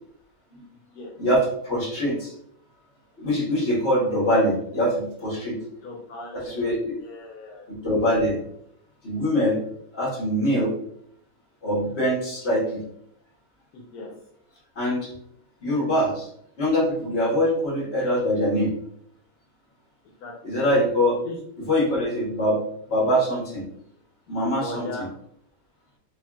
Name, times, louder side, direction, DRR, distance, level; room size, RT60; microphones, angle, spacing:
voice 1, 1.2-2.3 3.2-5.6 6.3-6.9 7.8-8.4 9.0-9.6 9.9-10.7 11.6-12.8 14.8-15.1 15.6-16.3 16.6-18.7 20.4-21.2 21.6-22.6 22.9-23.6 24.3-24.9, equal, 45° left, -7 dB, 1.8 m, -23 dB
voice 2, 5.8-7.7 13.7-14.1 20.2-20.3 20.7-20.9 21.2-21.4 24.5-25.1, left 2 dB, 80° left, -2 dB, 1.2 m, -38 dB
5.4 x 2.5 x 2.3 m, 0.70 s
omnidirectional pair, 1.6 m